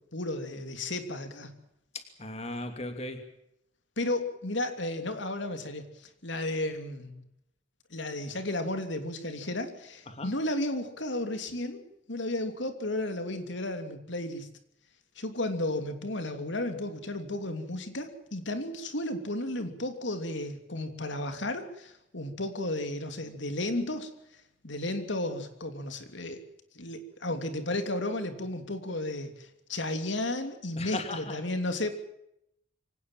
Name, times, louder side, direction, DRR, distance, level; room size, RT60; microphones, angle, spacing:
voice 1, 0.1-1.5 4.0-7.2 7.9-11.8 12.1-14.5 15.2-24.1 24.6-26.4 26.7-31.9, left 1 dB, 70° left, 8 dB, 3.0 m, -33 dB
voice 2, 1.9-3.2 10.1-10.3 30.8-31.4, left 2 dB, 35° left, 7 dB, 2.8 m, -37 dB
25.0 x 18.5 x 7.6 m, 0.79 s
head